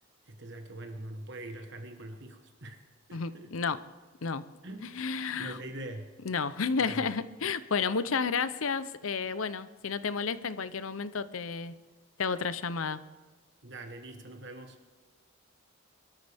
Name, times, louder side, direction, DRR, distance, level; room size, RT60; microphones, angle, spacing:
voice 1, 0.3-2.8 3.1-3.5 4.6-4.9 5.4-6.1 6.8-7.1 13.6-14.8, right 1 dB, 55° right, 5 dB, 1.4 m, -43 dB
voice 2, 3.1-3.8 4.2-4.4 4.8-5.6 6.2-11.8 12.2-13.0, left 5 dB, 75° left, 14 dB, 0.7 m, -31 dB
23.0 x 13.0 x 3.5 m, 1.4 s
head